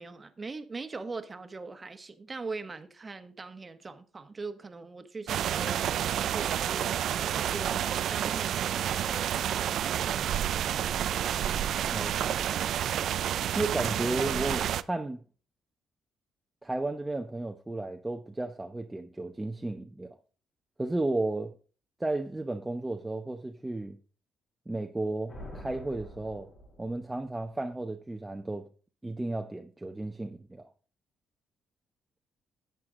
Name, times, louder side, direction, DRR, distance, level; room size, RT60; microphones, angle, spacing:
voice 1, 0.0-11.0, right 3 dB, 30° right, 1.3 m, -41 dB
sound 1, 5.3-14.8, right 10 dB, 70° right, 0.5 m, -29 dB
voice 2, 11.9-12.5 13.6-15.2 16.6-20.2 20.8-21.5 22.0-24.0 24.7-26.5 26.8-28.7 29.0-30.7, right 2 dB, 15° right, 0.9 m, -33 dB
sound 2, 25.3-27.3, equal, 50° left, 6.1 m, -46 dB
11.0 x 8.3 x 3.8 m
cardioid pair, 90°, 0 cm